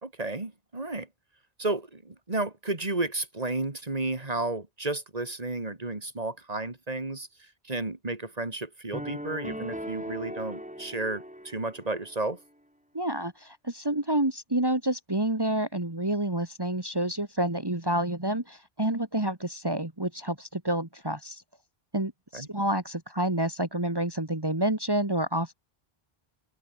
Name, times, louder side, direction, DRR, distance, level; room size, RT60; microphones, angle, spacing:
voice 1, 0.0-1.1 1.6-7.3 7.6-12.4 22.3-22.5, right 2 dB, 40° right, 2.7 m, -32 dB
sound 1, 8.9-12.2, equal, 5° right, 7.5 m, -39 dB
voice 2, 12.9-21.4 21.9-25.5, right 1 dB, 25° right, 2.1 m, -29 dB
open air
omnidirectional pair, 1.0 m